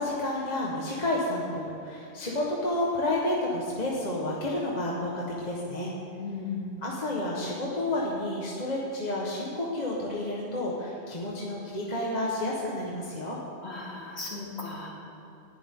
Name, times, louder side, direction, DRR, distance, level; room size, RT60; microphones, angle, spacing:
voice 1, 0.0-5.9 6.8-13.4, left 1 dB, 35° left, -4 dB, 1.6 m, -30 dB
voice 2, 6.2-6.8 13.6-14.9, left 4 dB, 60° left, -5 dB, 3.3 m, -36 dB
19.0 x 11.5 x 3.9 m, 2.7 s
omnidirectional pair, 1.3 m